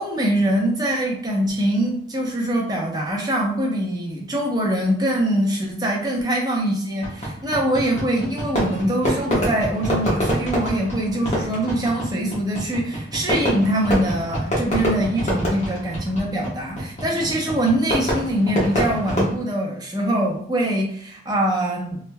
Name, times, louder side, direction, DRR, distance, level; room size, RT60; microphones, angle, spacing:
voice 1, 0.0-22.0, right 1 dB, 20° right, -2 dB, 0.7 m, -23 dB
Fireworks, 7.0-19.3, equal, 35° left, 1.1 m, -26 dB
3.3 x 3.1 x 2.2 m, 0.63 s
head